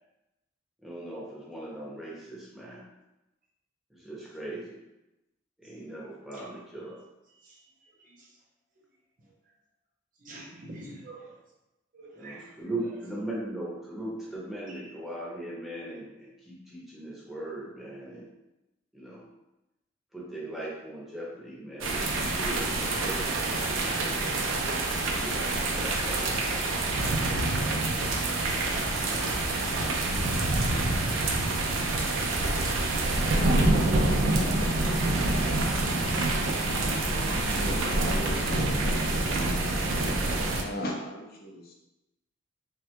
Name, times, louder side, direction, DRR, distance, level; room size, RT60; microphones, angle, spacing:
voice 1, 0.8-2.8 3.9-4.8 5.6-7.0 12.1-18.3 18.9-19.3 20.1-23.7 24.9-26.6 27.2-28.2, right 1 dB, ahead, 0.7 m, -39 dB
voice 2, 10.2-11.3 11.9-12.4 33.4-34.3, right 2 dB, 45° right, 0.5 m, -40 dB
sound 1, 21.8-40.6, right 2 dB, 90° right, 0.4 m, -27 dB
voice 3, 37.5-38.7 40.5-41.7, left 1 dB, 50° left, 0.5 m, -38 dB
3.4 x 2.2 x 2.8 m
head